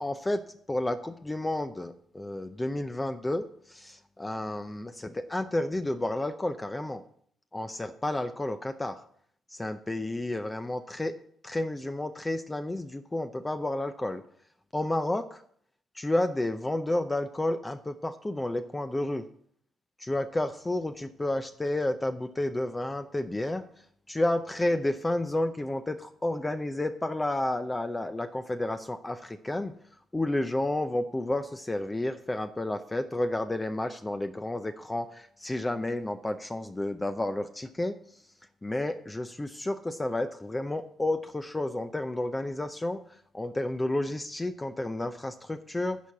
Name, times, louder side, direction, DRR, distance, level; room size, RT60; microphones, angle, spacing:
voice 1, 0.0-7.0 7.5-9.0 9.5-11.1 11.4-14.2 14.7-15.4 15.9-19.3 20.0-23.6 24.1-29.7 30.1-38.2 38.6-46.0, left 1 dB, 15° left, 8 dB, 0.5 m, -31 dB
11.0 x 4.6 x 7.1 m, 0.64 s
cardioid pair, 90°, 0 cm